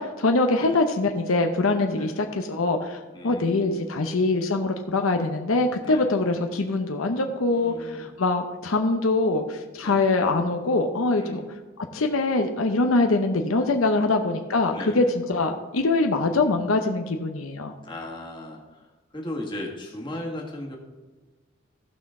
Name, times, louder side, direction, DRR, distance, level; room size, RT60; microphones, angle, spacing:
voice 1, 0.0-11.4 11.8-17.7, left 2 dB, 75° left, 4 dB, 0.7 m, -23 dB
voice 2, 3.1-4.1 5.8-6.1 7.5-8.1 9.8-10.0 11.2-11.5 14.0-14.2 14.7-15.2 16.1-16.6 17.8-20.8, left 1 dB, 20° left, -1 dB, 1.6 m, -37 dB
15.5 x 5.9 x 3.7 m, 1.3 s
head